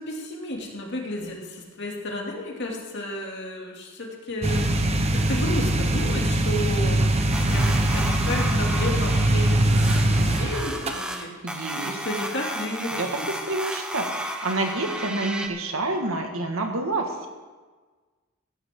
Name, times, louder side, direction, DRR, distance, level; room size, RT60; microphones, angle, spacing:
voice 1, 0.0-4.7 5.1-11.4 11.7-13.3, left 1 dB, 55° left, -1 dB, 2.6 m, -33 dB
sound 1, 4.4-10.9, right 1 dB, 30° right, 0.9 m, -22 dB
sound 2, 7.3-15.5, right 1 dB, 5° right, 0.9 m, -33 dB
voice 2, 11.4-12.0 12.9-13.1 13.4-17.3, right 2 dB, 85° right, 3 dB, 1.8 m, -28 dB
14.5 x 13.0 x 3.8 m, 1.4 s
head